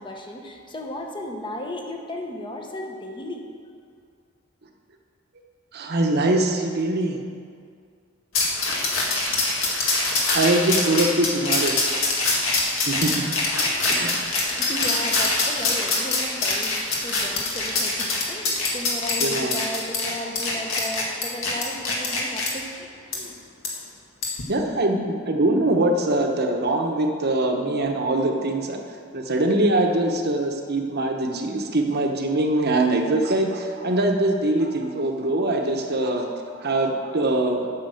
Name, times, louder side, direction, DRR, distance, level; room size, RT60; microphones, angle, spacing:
voice 1, 0.0-3.5 14.5-24.0, left 1 dB, 25° left, 2 dB, 1.1 m, -35 dB
voice 2, 5.7-7.2 10.3-11.8 12.9-13.2 13.9-14.2 19.2-19.6 24.5-36.3 36.5-37.6, right 2 dB, 50° right, 3 dB, 1.0 m, -23 dB
sound 1, 8.3-22.5 23.1-23.2 23.6-23.7 24.2-24.4, left 3 dB, 70° left, 1.9 m, -24 dB
8.9 x 6.2 x 7.7 m, 2.2 s
head